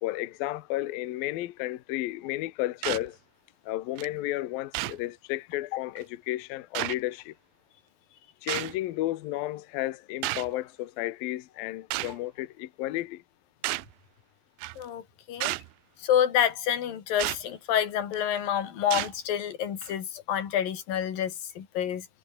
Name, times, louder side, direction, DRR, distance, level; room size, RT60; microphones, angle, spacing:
voice 1, 0.0-3.2 3.7-7.3 8.4-13.2, left 16 dB, 75° left, 2.1 m, -32 dB
sound 1, 2.8-3.1 4.0-4.1 4.7-5.0 6.0-6.1 6.7-7.0 8.5-8.8 10.2-10.5 11.9-12.2 13.6-13.9 14.6-14.8 15.4-15.7 17.2-17.4 18.1-18.4 18.9-19.1 19.8-19.9, right 21 dB, 80° right, 2.8 m, -31 dB
voice 2, 16.0-22.1, left 9 dB, 50° left, 4.0 m, -28 dB
omnidirectional pair, 5.8 m